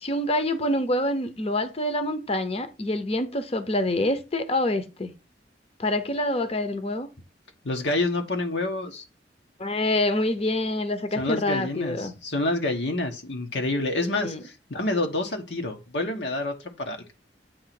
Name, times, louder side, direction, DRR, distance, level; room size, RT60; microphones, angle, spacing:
voice 1, 0.0-5.1 5.8-7.1 9.6-12.1 14.2-14.4, left 1 dB, 35° left, 0.9 m, -26 dB
voice 2, 7.6-9.0 11.2-17.1, left 2 dB, 80° left, 1.3 m, -28 dB
8.4 x 3.1 x 5.9 m
head